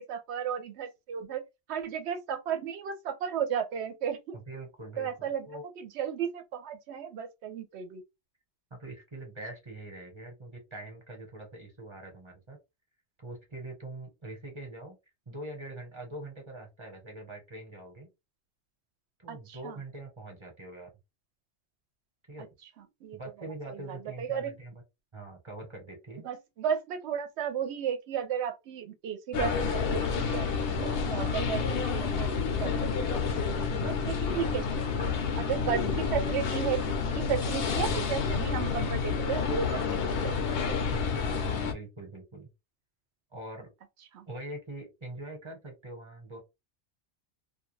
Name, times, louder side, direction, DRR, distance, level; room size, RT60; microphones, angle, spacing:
voice 1, 0.0-1.4 1.7-4.4 5.0-5.5 5.8-8.0 19.3-19.8 23.0-23.2 23.7-24.5 26.2-31.6 31.9-32.3 32.6-33.4 33.8-34.9 35.4-40.7 44.1-44.3, right 8 dB, 75° right, 0.8 m, -34 dB
voice 2, 4.3-5.6 8.7-12.6 13.2-15.0 15.3-18.1 19.2-20.9 22.3-22.5 23.1-24.8 25.1-26.3 30.7-31.3 33.7-34.0 34.3-34.6 35.8-36.0 40.9-42.5 43.3-43.7 44.3-46.4, right 2 dB, 25° right, 1.0 m, -43 dB
sound 1, 29.3-41.7, left 5 dB, 65° left, 0.7 m, -29 dB
2.4 x 2.2 x 3.1 m
omnidirectional pair, 1.2 m